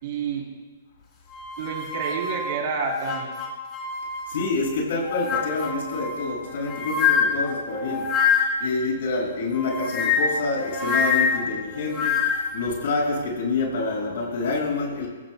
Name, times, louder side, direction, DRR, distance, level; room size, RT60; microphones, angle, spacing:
voice 1, 0.0-0.4 1.6-3.3, right 6 dB, 50° right, 1 dB, 3.2 m, -29 dB
sound 1, 1.3-4.6 5.0-8.7 9.5-12.6, left 6 dB, 25° left, 3.7 m, -26 dB
voice 2, 4.3-8.1 8.6-15.1, left 3 dB, 65° left, -1 dB, 5.9 m, -27 dB
29.0 x 16.0 x 2.2 m, 1.3 s
hypercardioid pair, 145°, 0 cm